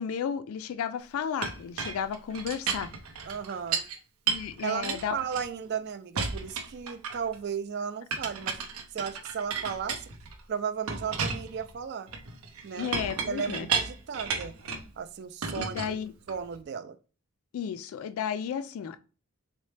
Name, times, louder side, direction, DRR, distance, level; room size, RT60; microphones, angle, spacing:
voice 1, 0.0-2.9 4.3-5.2 12.8-13.7 15.6-16.1 17.5-19.0, left 7 dB, 75° left, 0.3 m, -33 dB
Chink clink, 1.4-4.0 4.3-5.8 6.2-7.4 8.1-10.4 10.9-14.9 15.4-16.6, right 5 dB, 90° right, 0.6 m, -34 dB
voice 2, 3.2-3.8 4.6-8.6 8.9-10.1 10.5-12.1 12.6-12.9 13.2-14.5 15.0-16.0 16.3-17.0, right 7 dB, 50° right, 0.3 m, -35 dB
4.0 x 2.1 x 3.2 m
head